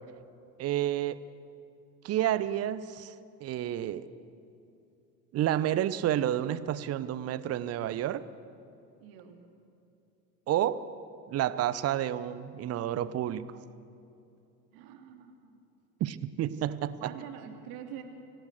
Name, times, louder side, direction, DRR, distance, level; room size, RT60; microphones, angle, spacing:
voice 1, 0.6-1.2 2.0-3.1 3.4-4.1 5.3-8.2 10.5-10.9 11.3-13.5 16.0-17.1, right 12 dB, 30° right, 16 dB, 0.8 m, -30 dB
voice 2, 9.0-9.4 14.7-15.6 17.0-18.0, right 9 dB, 50° right, 5 dB, 2.7 m, -45 dB
25.0 x 17.5 x 6.7 m, 2.8 s
figure-of-eight pair, 80°, 48 cm